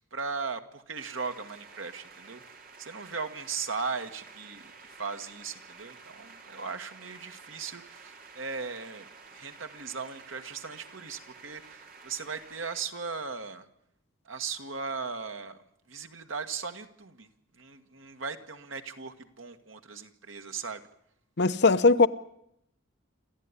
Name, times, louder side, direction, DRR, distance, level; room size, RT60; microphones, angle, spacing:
voice 1, 0.0-2.4 2.8-13.7 14.3-15.6 15.9-17.3 17.5-20.8, right 5 dB, 80° right, 1.8 m, -38 dB
sound 1, 1.0-12.9, right 4 dB, 45° right, 2.8 m, -51 dB
voice 2, 21.4-22.1, left 3 dB, 60° left, 0.9 m, -20 dB
27.5 x 14.0 x 9.8 m
head